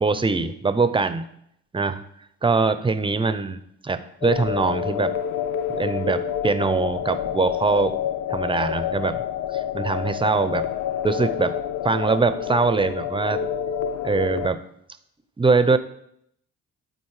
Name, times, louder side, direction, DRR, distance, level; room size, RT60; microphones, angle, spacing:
voice 1, 0.0-1.3 1.7-2.0 2.4-5.2 5.7-8.0 8.3-9.2 9.5-10.7 11.0-11.6 11.8-13.4 14.0-14.6 15.4-15.8, right 4 dB, 15° right, 12 dB, 0.6 m, -22 dB
sound 1, 4.2-14.5, left 9 dB, 80° left, 0.5 m, -28 dB
12.0 x 4.1 x 4.8 m, 0.73 s
cardioid pair, 90°, 30 cm